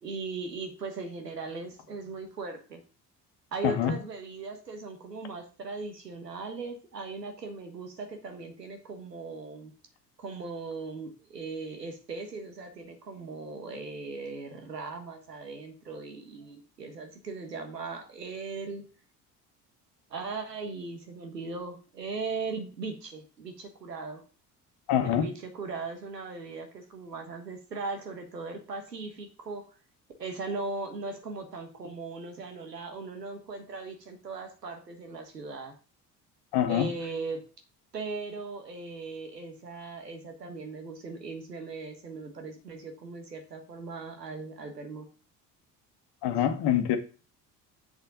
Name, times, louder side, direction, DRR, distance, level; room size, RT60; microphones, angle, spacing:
voice 1, 0.0-2.8 3.5-9.7 10.2-18.9 20.1-24.2 25.0-29.7 30.2-35.8 36.7-37.4 37.9-45.1, right 3 dB, 85° right, 1.5 m, -38 dB
voice 2, 24.9-25.3 36.5-36.9 46.2-47.0, left 10 dB, 55° left, 1.5 m, -25 dB
7.9 x 6.7 x 3.8 m
figure-of-eight pair, 55°, 47 cm